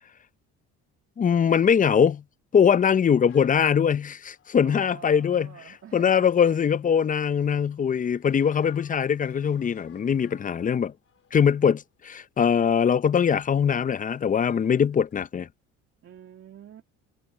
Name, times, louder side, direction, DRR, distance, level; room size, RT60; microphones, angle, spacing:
voice 1, 1.2-2.2 2.5-5.5 5.9-10.9 11.3-15.5, left 7 dB, 25° left, 0.6 m, -22 dB
sound 1, 3.3-7.3 8.1-15.3, left 9 dB, 45° left, 4.1 m, -59 dB
voice 2, 4.6-6.6 16.0-16.8, right 9 dB, 45° right, 2.0 m, -47 dB
cardioid pair, 95°, 31 cm